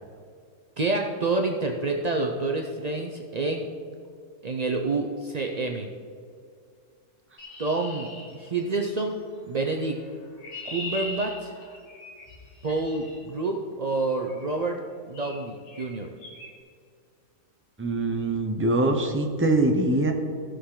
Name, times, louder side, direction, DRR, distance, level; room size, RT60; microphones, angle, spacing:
voice 1, 0.8-3.7 4.4-5.9 7.6-9.2 9.5-10.0 10.7-11.5 12.6-14.8 15.1-16.1, right 3 dB, 80° right, 3 dB, 0.3 m, -28 dB
Chirp tweet, 7.4-9.0 10.0-13.2 14.3-14.5 15.1-15.4 15.7-15.9 16.2-16.5, left 3 dB, 75° left, 2.2 m, -40 dB
voice 2, 17.8-20.1, right 2 dB, 15° right, 3 dB, 0.5 m, -23 dB
15.5 x 6.4 x 3.8 m, 2.2 s
omnidirectional pair, 1.7 m